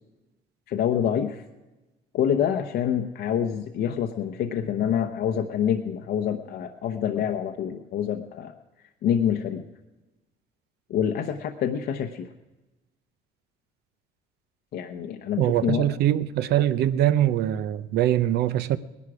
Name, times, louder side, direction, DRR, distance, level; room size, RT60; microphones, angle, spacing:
voice 1, 0.7-1.4 2.1-8.5 9.0-9.6 10.9-12.3 14.7-15.9, left 9 dB, 70° left, 0.9 m, -26 dB
voice 2, 15.4-18.8, right 12 dB, 75° right, 0.7 m, -23 dB
19.0 x 11.0 x 4.9 m
cardioid pair, 110°, 17 cm